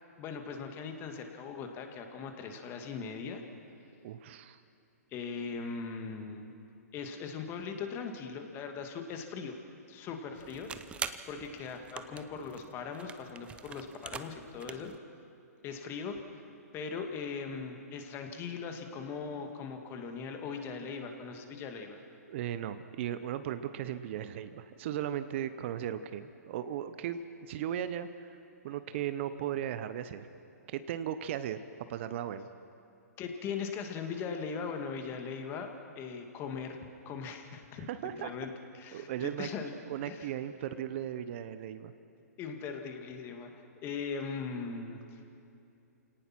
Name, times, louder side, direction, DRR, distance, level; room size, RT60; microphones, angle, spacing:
voice 1, 0.2-3.4 5.1-6.5 6.9-9.6 9.9-10.7 11.3-14.9 15.6-16.2 16.7-22.0 33.2-36.8 37.1-37.9 38.2-39.7 40.1-40.3 42.4-43.5 43.8-45.2, left 5 dB, 25° left, 5 dB, 2.0 m, -39 dB
voice 2, 4.0-4.6 22.3-28.4 28.6-30.3 30.7-31.6 31.9-32.5 37.8-38.3 38.9-39.5 39.9-41.9, right 10 dB, 45° right, 12 dB, 0.9 m, -37 dB
sound 1, 10.3-15.0, right 6 dB, 10° right, 0.6 m, -44 dB
28.5 x 18.0 x 6.0 m, 2.7 s
hypercardioid pair, 135°, 9 cm